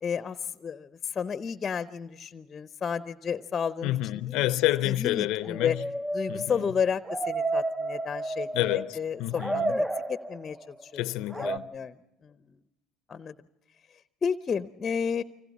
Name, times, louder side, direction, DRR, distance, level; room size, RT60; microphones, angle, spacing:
voice 1, 0.0-4.0 4.3-4.4 4.8-5.8 6.1-11.0 11.3-12.5 13.1-13.3 14.2-15.2, left 6 dB, 35° left, 0.8 m, -32 dB
voice 2, 3.8-5.8 6.3-6.6 8.5-9.7 10.9-11.7, left 16 dB, 70° left, 0.6 m, -29 dB
sound 1, 5.4-9.0 9.3-10.7 11.3-11.6, right 2 dB, 10° right, 0.7 m, -31 dB
29.5 x 25.0 x 4.2 m
hypercardioid pair, 70°, 0 cm